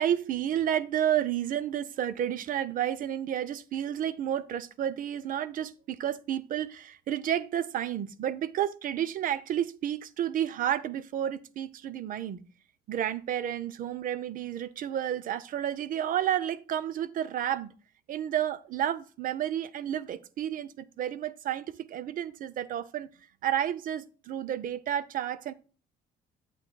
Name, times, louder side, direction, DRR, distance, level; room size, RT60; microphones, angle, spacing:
voice 1, 0.0-12.4 12.9-17.7 18.1-23.1 23.4-25.5, right 10 dB, 55° right, 0.6 m, -31 dB
8.9 x 7.9 x 2.2 m
cardioid pair, 110°, 17 cm